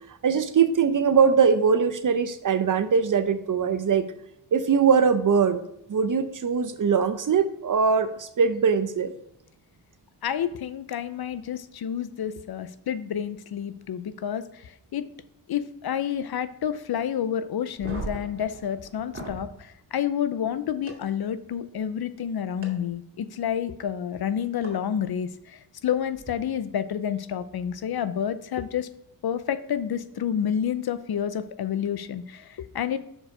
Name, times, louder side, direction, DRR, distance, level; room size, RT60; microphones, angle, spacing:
voice 1, 0.2-4.1 4.5-5.6 5.9-9.1, right 6 dB, 45° right, 11 dB, 0.7 m, -21 dB
voice 2, 10.2-15.1 15.5-28.9 29.2-33.0, left 9 dB, 60° left, 13 dB, 0.6 m, -29 dB
sound 1, 17.7-19.5 20.9-21.0 22.6-22.7 24.6-24.7 26.1-26.3, right 2 dB, 30° right, 2.3 m, -37 dB
6.4 x 5.0 x 4.9 m, 0.79 s
cardioid pair, 80°, 43 cm